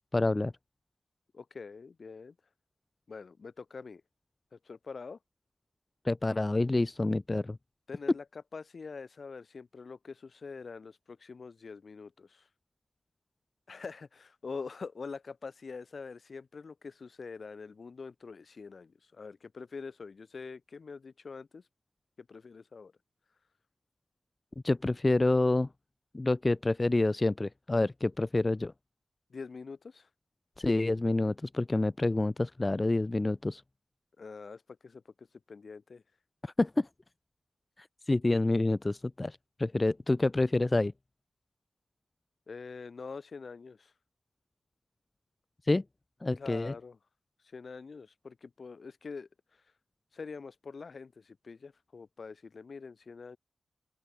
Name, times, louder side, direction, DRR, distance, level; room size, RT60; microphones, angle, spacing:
voice 1, 0.1-0.5 6.0-7.6 24.6-25.7 26.1-28.7 30.6-33.6 36.4-36.9 37.8-40.9 45.7-45.8 46.2-46.7, left 2 dB, 25° left, 0.7 m, -28 dB
voice 2, 1.3-2.3 3.1-4.0 4.5-5.2 7.9-12.5 13.7-21.6 22.2-22.9 29.3-30.1 34.2-36.0 42.5-43.9 46.4-47.0 47.5-49.3 50.1-53.4, left 4 dB, 55° left, 6.4 m, -45 dB
wide cardioid pair, 120°, 0 cm